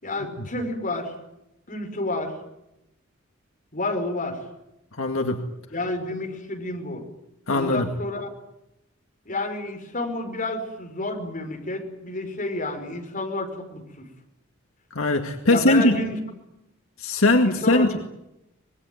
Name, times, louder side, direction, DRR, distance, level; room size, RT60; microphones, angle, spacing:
voice 1, 0.0-1.2 1.7-2.3 3.7-4.4 5.7-7.0 7.5-8.3 9.3-14.1 15.5-16.2 17.4-17.9, left 2 dB, 40° left, 4 dB, 5.3 m, -30 dB
voice 2, 5.0-5.4 7.5-7.9 15.0-16.0 17.0-18.0, left 2 dB, 75° left, 5 dB, 2.1 m, -20 dB
25.5 x 21.0 x 9.3 m, 0.88 s
head